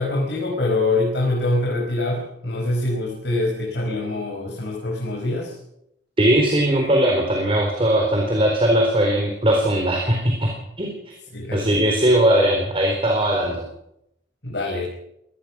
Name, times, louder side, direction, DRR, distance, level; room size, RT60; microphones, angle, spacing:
voice 1, 0.0-5.6 11.3-11.8 14.4-14.9, left 2 dB, 70° left, -1 dB, 5.4 m, -24 dB
voice 2, 6.2-10.5 10.8-11.1 11.5-13.6, right 1 dB, 30° right, 1 dB, 4.0 m, -19 dB
24.5 x 18.5 x 6.2 m, 0.80 s
head